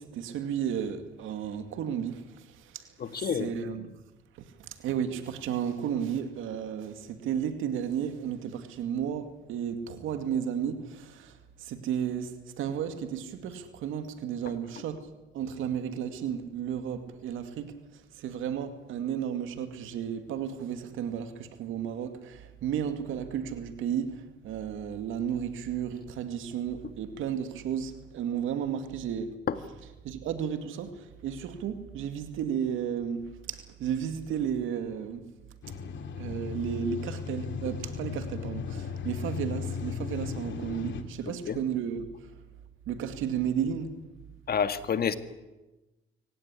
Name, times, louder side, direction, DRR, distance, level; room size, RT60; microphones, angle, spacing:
voice 1, 0.0-4.0 4.6-15.0 15.3-17.7 18.1-29.3 30.0-35.3 36.0-42.1 42.9-43.9, right 8 dB, 85° right, 2.4 m, -33 dB
voice 2, 3.0-3.5 29.5-29.6 41.5-41.6 44.5-45.2, left 7 dB, 50° left, 1.9 m, -28 dB
sound 1, 35.6-41.0, left 6 dB, 70° left, 2.6 m, -36 dB
23.5 x 17.5 x 9.9 m
cardioid pair, 90°, 20 cm